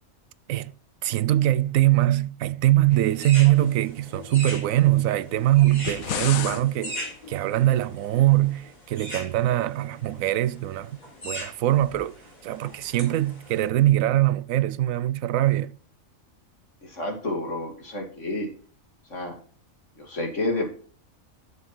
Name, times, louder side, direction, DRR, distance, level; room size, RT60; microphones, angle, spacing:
voice 1, 1.0-11.0 11.2-12.2 12.4-15.7, right 15 dB, 75° right, 1.0 m, -22 dB
sound 1, 2.9-13.7, equal, 30° left, 5.9 m, -40 dB
sound 2, 5.7-6.6, left 10 dB, 85° left, 1.2 m, -30 dB
voice 2, 16.8-18.5 19.1-19.4 20.0-20.7, left 2 dB, 60° left, 3.0 m, -30 dB
11.0 x 7.2 x 4.3 m
omnidirectional pair, 1.4 m